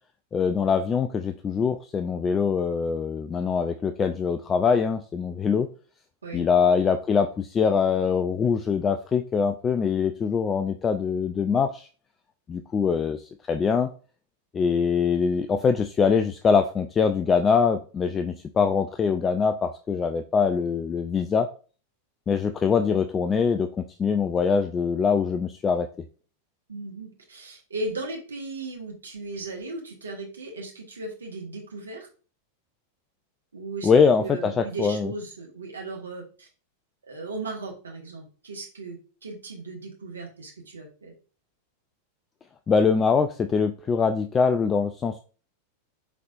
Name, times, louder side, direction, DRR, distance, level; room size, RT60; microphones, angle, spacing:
voice 1, 0.3-5.7 6.3-11.9 12.5-13.2 13.5-13.9 14.5-21.5 22.3-25.9 33.8-35.1 42.7-45.2, left 6 dB, 20° left, 8 dB, 0.3 m, -23 dB
voice 2, 26.7-32.1 33.5-33.9 34.2-36.5 37.0-41.1, right 2 dB, 70° right, 0 dB, 1.4 m, -36 dB
5.3 x 3.9 x 2.5 m, 0.38 s
figure-of-eight pair, 90°, 0 cm